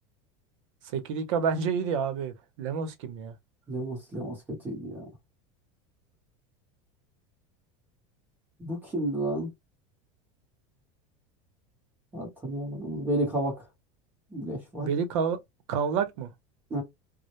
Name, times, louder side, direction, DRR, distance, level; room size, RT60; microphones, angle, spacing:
voice 1, 0.9-3.3 14.8-15.4 15.7-16.3, right 6 dB, 70° right, 0.7 m, -29 dB
voice 2, 3.7-5.1 8.6-9.5 12.1-13.6 14.3-14.9 16.7-16.8, right 1 dB, 10° right, 0.9 m, -31 dB
2.1 x 2.1 x 2.9 m
supercardioid pair, 165°, 16 cm